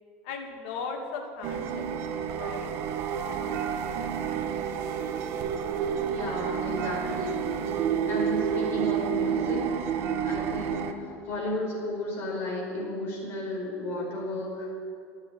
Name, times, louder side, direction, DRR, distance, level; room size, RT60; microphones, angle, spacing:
voice 1, 0.2-2.7, left 5 dB, 70° left, 3 dB, 2.5 m, -38 dB
sound 1, 1.4-10.9, right 7 dB, 45° right, 1.1 m, -29 dB
voice 2, 6.1-7.4 8.1-9.6 10.2-14.7, left 1 dB, 40° left, -3 dB, 4.9 m, -34 dB
14.0 x 9.0 x 9.7 m, 2.5 s
cardioid pair, 160°, 6 cm